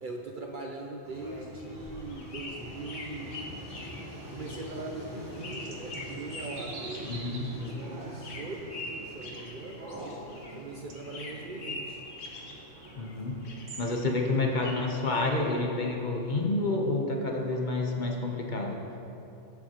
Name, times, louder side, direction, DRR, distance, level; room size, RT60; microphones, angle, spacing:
voice 1, 0.0-3.5 4.3-7.1 7.6-9.9 10.4-12.0, right 2 dB, 50° right, 1 dB, 0.7 m, -41 dB
sound 1, 1.0-15.7, equal, 20° right, 0.9 m, -46 dB
sound 2, 1.6-10.7 10.9-13.2 13.4-15.5, left 2 dB, 75° left, 1.4 m, -44 dB
sound 3, 4.8-14.4, right 2 dB, 75° right, 1.4 m, -47 dB
voice 2, 7.0-7.5 13.0-13.3 13.8-18.8, left 2 dB, 45° left, 1 dB, 0.9 m, -29 dB
14.0 x 7.6 x 2.9 m, 2.8 s
omnidirectional pair, 1.3 m